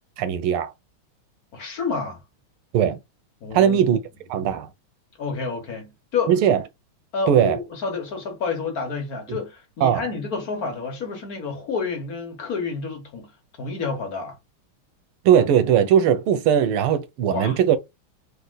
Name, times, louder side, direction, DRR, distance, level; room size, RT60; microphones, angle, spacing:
voice 1, 0.2-0.7 2.7-3.0 3.5-4.0 4.3-4.7 6.3-6.6 7.3-7.6 9.3-9.4 9.8-10.0 15.2-17.8, right 9 dB, 90° right, 1.7 m, -19 dB
voice 2, 1.5-2.2 3.4-3.8 5.2-6.3 7.1-13.3 13.6-14.4 17.3-17.6, left 4 dB, 50° left, 1.4 m, -29 dB
4.1 x 2.8 x 3.9 m
omnidirectional pair, 2.3 m